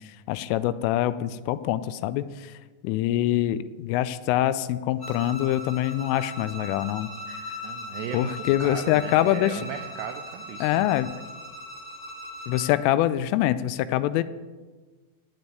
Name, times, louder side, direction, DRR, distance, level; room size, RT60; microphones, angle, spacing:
voice 1, 0.3-2.5 2.8-7.4 8.1-9.6 10.6-11.1 12.5-14.2, left 13 dB, 85° left, 14 dB, 3.0 m, -25 dB
Bowed string instrument, 5.0-12.8, left 1 dB, 35° left, 0.8 m, -39 dB
voice 2, 7.6-10.9, right 8 dB, 85° right, 5 dB, 2.4 m, -37 dB
15.0 x 5.3 x 9.3 m, 1.3 s
omnidirectional pair, 5.8 m